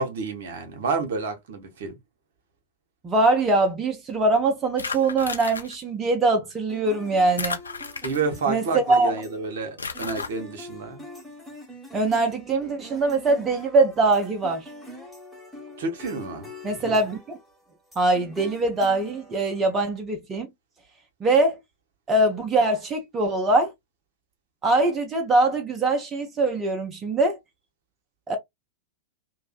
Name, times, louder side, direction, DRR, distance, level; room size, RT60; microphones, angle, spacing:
voice 1, 0.0-2.0 8.0-11.0 15.8-16.5, right 4 dB, 60° right, 0.8 m, -29 dB
voice 2, 3.0-7.6 8.5-9.1 11.9-14.7 16.6-17.4 18.0-20.5 21.2-21.6 22.1-23.7 24.6-27.4 28.3-28.4, right 2 dB, 20° right, 0.5 m, -22 dB
sound 1, 4.8-5.7 7.4-8.5 9.8-10.3, left 4 dB, 80° left, 0.4 m, -32 dB
sound 2, 6.7-19.9, equal, ahead, 1.1 m, -44 dB
2.6 x 2.0 x 2.3 m
figure-of-eight pair, 95°, 0 cm